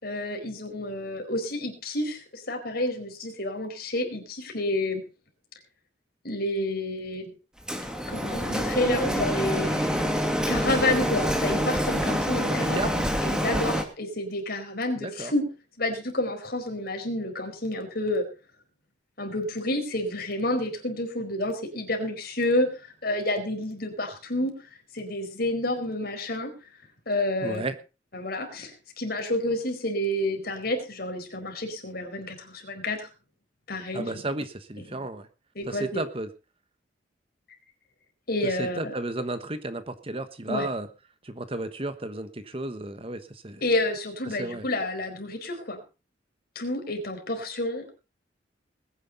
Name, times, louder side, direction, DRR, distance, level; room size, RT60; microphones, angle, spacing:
voice 1, 0.0-5.0 6.2-7.3 8.1-15.5 15.8-18.3 19.2-24.5 24.9-26.5 27.1-27.6 28.1-33.1 33.7-34.1 34.9-35.0 35.5-36.0 38.3-38.9 40.5-40.7 43.6-45.8 46.5-47.9, left 1 dB, 55° left, 5 dB, 4.6 m, -29 dB
Printer, 7.7-13.8, equal, 5° right, 2.3 m, -26 dB
voice 2, 12.5-12.9 15.0-15.3 27.4-27.8 33.9-35.3 35.6-36.3 38.4-40.9 41.2-43.6 44.2-44.7, right 2 dB, 30° right, 11 dB, 1.2 m, -33 dB
21.0 x 9.9 x 4.0 m, 0.32 s
head